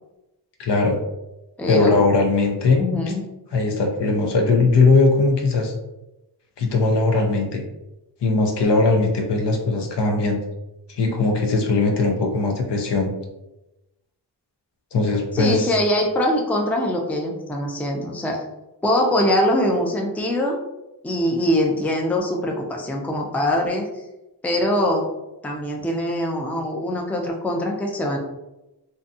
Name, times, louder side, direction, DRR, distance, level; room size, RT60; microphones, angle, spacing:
voice 1, 0.6-1.0 1.7-2.8 3.5-5.7 6.6-7.6 8.2-10.4 10.9-13.1 14.9-15.7, left 3 dB, 75° left, 2 dB, 0.7 m, -19 dB
voice 2, 1.6-2.0 2.8-3.2 15.3-18.4 18.8-20.6 21.0-23.9 24.4-25.0 25.4-28.2, left 1 dB, 5° left, 1 dB, 0.4 m, -22 dB
2.6 x 2.2 x 2.6 m, 0.95 s
wide cardioid pair, 80°, 41 cm